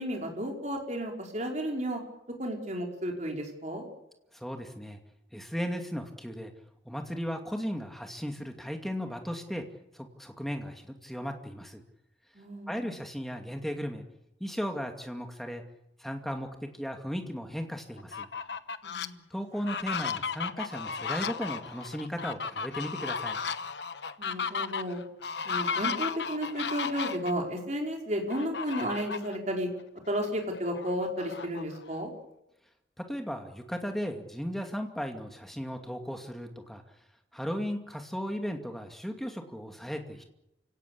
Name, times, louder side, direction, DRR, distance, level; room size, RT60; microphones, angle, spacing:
voice 1, 0.0-2.0 2.4-3.8 12.3-12.9 18.8-19.2 24.2-25.0 25.4-29.7 30.1-32.1, equal, 40° right, 1 dB, 5.1 m, -33 dB
voice 2, 4.3-5.0 5.3-6.5 6.8-9.6 9.9-11.8 12.7-14.0 14.4-15.6 16.0-16.5 16.7-18.3 19.3-23.4 33.0-36.8 37.3-40.2, equal, ahead, 4 dB, 2.4 m, -36 dB
Fowl, 18.0-19.1 19.6-27.3 28.3-29.4 29.8-29.9 30.3-32.0, left 5 dB, 70° left, 1.1 m, -34 dB
29.0 x 17.5 x 8.6 m, 0.86 s
head